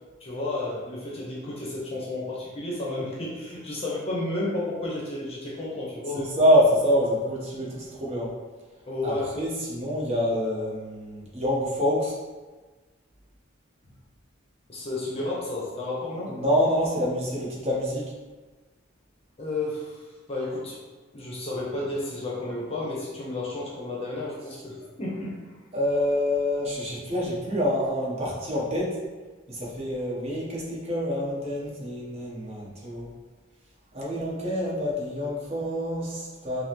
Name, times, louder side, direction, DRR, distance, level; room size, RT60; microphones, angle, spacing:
voice 1, 0.2-6.3 8.9-9.3 14.7-16.4 19.4-20.8 21.1-25.3, left 2 dB, 30° left, -5 dB, 0.7 m, -32 dB
voice 2, 6.1-8.3 9.0-12.2 16.3-18.0 25.7-28.9 29.5-33.1 33.9-36.6, equal, 30° right, -5 dB, 1.0 m, -26 dB
5.5 x 2.1 x 3.0 m, 1.3 s
head